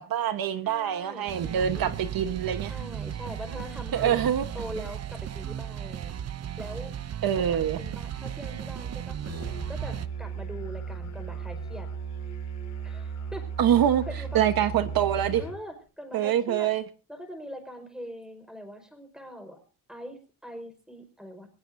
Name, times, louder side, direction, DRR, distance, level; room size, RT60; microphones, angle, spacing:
voice 1, 0.0-2.7 3.9-4.4 7.2-7.8 13.6-14.0 14.3-15.4 16.1-16.8, right 10 dB, 70° right, 9 dB, 1.3 m, -25 dB
voice 2, 0.6-2.0 2.7-4.2 4.5-6.1 6.6-6.9 7.3-9.2 9.7-11.9 12.8-13.7 14.1-14.5 15.4-16.7 17.1-19.6 19.9-21.5, equal, ahead, 6 dB, 5.0 m, -42 dB
sound 1, 1.3-10.1, right 10 dB, 45° right, 0.8 m, -36 dB
Musical instrument, 9.2-15.6, right 5 dB, 50° left, 5.4 m, -36 dB
22.5 x 20.0 x 2.7 m, 0.37 s
cardioid pair, 145°, 36 cm